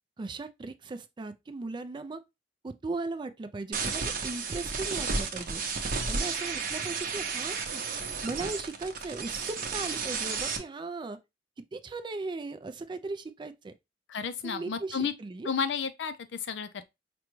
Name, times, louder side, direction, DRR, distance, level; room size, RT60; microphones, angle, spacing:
voice 1, 0.2-2.2 2.6-5.6 6.1-7.8 8.2-11.2 11.7-13.7 14.4-15.5, right 3 dB, 25° right, 0.3 m, -37 dB
sound 1, 3.7-10.6, right 5 dB, 50° right, 0.7 m, -32 dB
voice 2, 14.1-15.1 15.4-16.8, left 6 dB, 70° left, 0.5 m, -32 dB
5.0 x 2.2 x 3.0 m
head